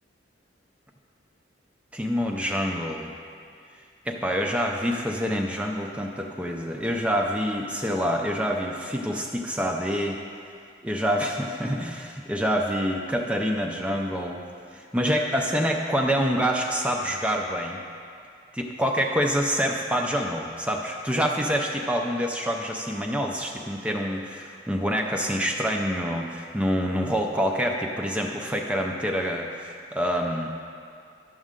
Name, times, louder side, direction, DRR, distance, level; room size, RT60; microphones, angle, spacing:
voice 1, 1.9-3.1 4.1-10.2 10.8-14.5 14.7-17.8 18.5-30.5, equal, 5° right, 1 dB, 0.4 m, -26 dB
11.5 x 6.3 x 3.7 m, 2.4 s
head